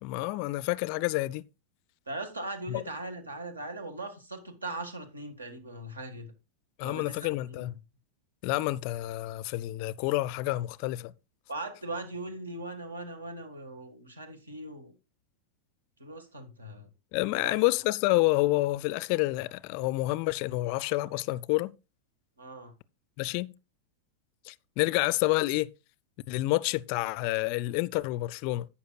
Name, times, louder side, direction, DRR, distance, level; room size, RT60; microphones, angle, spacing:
voice 1, 0.0-1.4 2.7-2.8 6.8-7.7 8.4-11.1 17.1-21.7 23.2-23.5 24.5-25.7 26.3-28.7, left 19 dB, 45° left, 0.4 m, -28 dB
voice 2, 2.1-6.3 6.8-7.7 11.5-14.9 16.0-16.9 17.3-17.6 22.4-22.7, right 2 dB, 75° right, 1.7 m, -40 dB
11.5 x 8.3 x 2.4 m
figure-of-eight pair, 90°, 0 cm